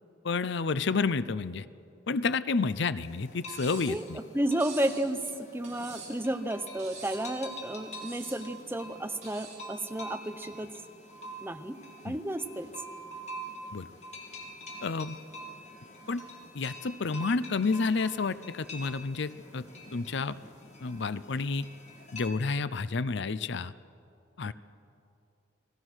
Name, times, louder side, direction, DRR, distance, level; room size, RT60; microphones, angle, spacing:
voice 1, 0.2-1.7 2.1-4.2 12.1-12.2 13.7-13.9 14.8-15.2 16.1-16.2 16.5-19.6 19.9-20.3 20.8-21.7 22.1-23.7 24.4-24.5, left 4 dB, 65° left, 15 dB, 0.6 m, -30 dB
sound 1, 3.0-22.3, equal, 35° left, 2.8 m, -46 dB
Cutlery silverware, 3.5-4.0 4.6-5.0 5.6-6.3 6.8-7.3 7.9-8.4 9.2-9.6, right 5 dB, 40° right, 7.6 m, -46 dB
voice 2, 3.9-5.2 5.5-10.7 11.4-11.8 12.0-12.7 24.5-24.6, right 1 dB, 10° right, 8 dB, 0.9 m, -32 dB
30.0 x 20.0 x 6.3 m, 2.6 s
head